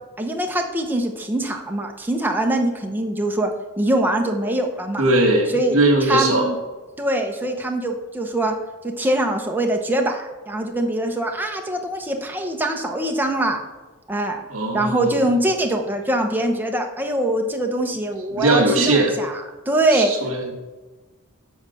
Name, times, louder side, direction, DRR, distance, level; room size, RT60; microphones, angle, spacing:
voice 1, 0.2-5.0 5.5-5.8 6.1-6.6 7.0-8.6 8.8-13.6 14.1-14.4 14.7-19.4 19.7-20.1, right 1 dB, 10° right, 2 dB, 0.8 m, -23 dB
voice 2, 5.0-6.5 14.5-15.2 18.3-19.1 19.9-20.5, right 2 dB, 65° right, 3 dB, 1.7 m, -19 dB
7.2 x 4.8 x 6.6 m, 1.2 s
head